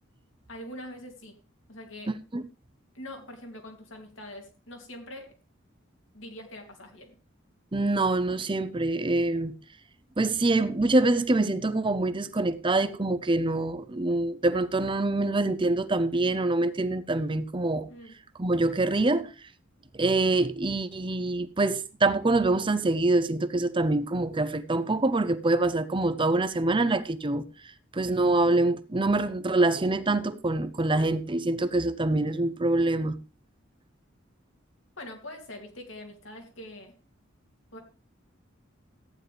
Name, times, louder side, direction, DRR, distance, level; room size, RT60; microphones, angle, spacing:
voice 1, 0.5-1.4 1.7-2.1 2.9-5.3 6.1-7.1 17.9-18.2 35.0-36.9 37.7-37.8, left 1 dB, 75° left, 2.8 m, -43 dB
voice 2, 2.1-2.4 7.7-9.6 10.2-17.9 18.4-19.3 19.9-27.5 27.9-33.2, right 2 dB, 25° right, 0.7 m, -25 dB
14.5 x 9.6 x 3.4 m
head